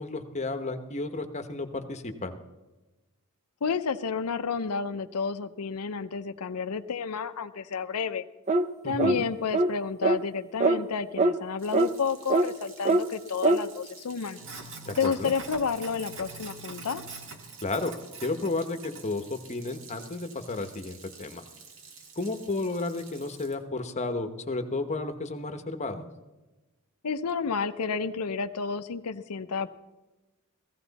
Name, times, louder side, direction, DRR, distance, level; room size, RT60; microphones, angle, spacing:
voice 1, 0.0-2.4 8.8-9.2 14.8-15.3 17.6-17.9 18.2-21.4 22.2-26.0, left 2 dB, 30° left, 7 dB, 1.0 m, -32 dB
voice 2, 3.6-8.2 8.8-14.4 15.0-17.0 27.0-29.7, left 5 dB, 85° left, 9 dB, 0.6 m, -30 dB
sound 1, 8.5-8.7 9.0-9.2 9.5-9.7 10.0-10.2 10.6-10.8 11.2-11.3 11.7-11.9 12.3-12.5 12.9-13.0 13.4-13.6, right 2 dB, 30° right, 0.5 m, -22 dB
Sink (filling or washing), 11.6-23.5, right 4 dB, 60° right, 1.6 m, -46 dB
16.0 x 15.5 x 4.1 m, 1.1 s
head